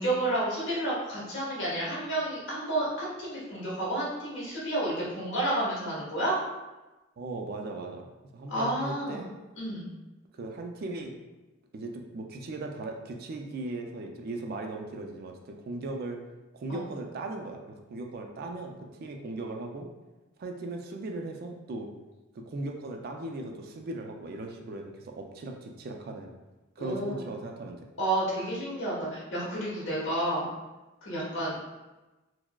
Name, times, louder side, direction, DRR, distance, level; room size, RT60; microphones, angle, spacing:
voice 1, 0.0-6.3 8.5-9.3 9.6-9.9 16.7-16.8 26.8-27.2 28.0-30.4 31.0-31.5, right 1 dB, 60° left, -6 dB, 1.2 m, -30 dB
voice 2, 7.2-8.1 8.3-9.3 10.3-11.1 11.7-16.2 16.5-19.9 20.4-21.9 22.3-26.3 26.8-27.8, right 2 dB, 45° right, 2 dB, 0.3 m, -38 dB
4.5 x 2.0 x 2.2 m, 1.1 s
head